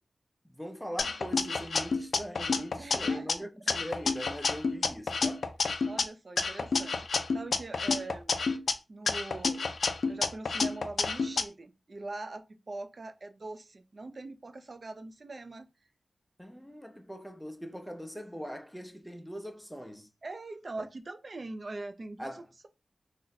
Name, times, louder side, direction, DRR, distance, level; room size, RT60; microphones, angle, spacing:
voice 1, 0.4-5.5 16.4-20.1 22.2-22.5, equal, ahead, 0.6 m, -41 dB
sound 1, 1.0-3.3 3.7-6.0 6.4-8.7 9.1-11.4, left 4 dB, 80° left, 0.4 m, -29 dB
voice 2, 2.8-3.4 5.7-8.4 8.9-9.8 10.1-15.7 20.2-22.7, right 2 dB, 55° right, 0.5 m, -42 dB
2.6 x 2.1 x 4.0 m
cardioid pair, 55°, 0 cm